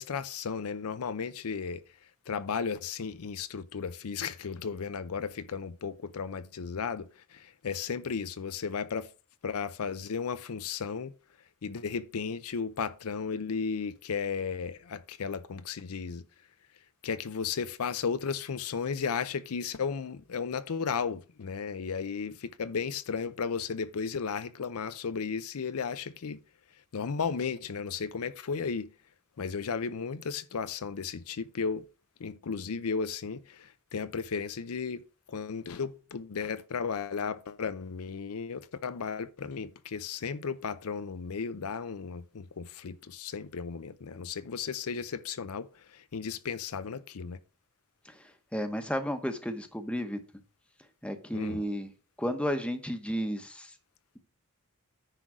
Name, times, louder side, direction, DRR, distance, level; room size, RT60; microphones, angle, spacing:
voice 1, 0.0-1.8 2.3-9.1 9.4-11.1 11.6-16.2 17.0-26.4 26.9-28.9 29.4-31.8 32.2-35.0 35.3-47.4 51.3-51.6, left 5 dB, 75° left, 0.5 m, -34 dB
voice 2, 48.5-50.2 51.0-51.9 52.2-53.7, equal, 5° left, 1.0 m, -32 dB
9.9 x 3.8 x 6.1 m
head